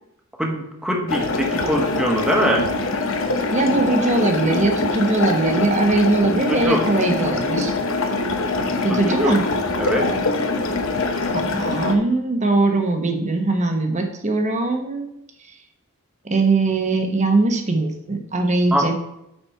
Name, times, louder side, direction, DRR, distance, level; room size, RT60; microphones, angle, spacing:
voice 1, 0.4-2.7 6.5-6.8 9.2-9.3 9.8-10.1 18.7-18.9, equal, 5° right, 0 dB, 1.2 m, -22 dB
sound 1, 1.1-12.0, left 3 dB, 65° left, 0.9 m, -23 dB
voice 2, 3.5-7.7 8.8-9.4 11.3-15.1 16.2-18.9, right 3 dB, 30° right, 4 dB, 1.0 m, -20 dB
8.9 x 4.3 x 4.5 m, 0.84 s
head